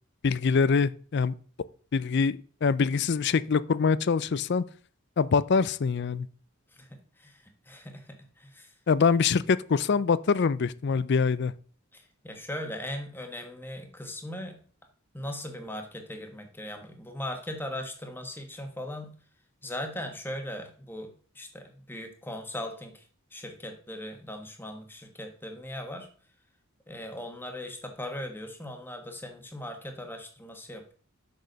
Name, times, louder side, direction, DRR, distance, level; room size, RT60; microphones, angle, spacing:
voice 1, 0.2-1.3 1.9-4.6 5.2-6.3 8.9-11.5, left 5 dB, 50° left, 0.4 m, -24 dB
voice 2, 6.8-8.7 11.9-14.6 15.1-19.1 19.6-23.0 23.3-26.1 26.9-30.9, left 1 dB, 10° left, 1.4 m, -39 dB
6.6 x 6.2 x 6.4 m
head